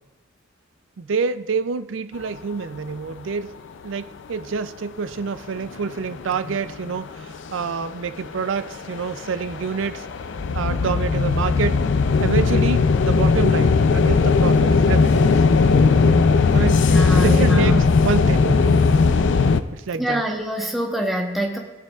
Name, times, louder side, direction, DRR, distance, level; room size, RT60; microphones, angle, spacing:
voice 1, 1.0-3.5 3.8-10.0 10.5-11.8 12.2-15.4 16.5-16.8 17.2-18.8 19.3-19.5 19.7-20.2, right 5 dB, 80° right, 12 dB, 0.4 m, -27 dB
sound 1, 5.2-5.3 5.6-7.7 8.2-19.6, left 4 dB, 70° left, 0.4 m, -18 dB
voice 2, 16.9-17.8 19.9-21.6, equal, ahead, 0 dB, 1.0 m, -24 dB
20.0 x 6.7 x 2.4 m, 1.2 s
head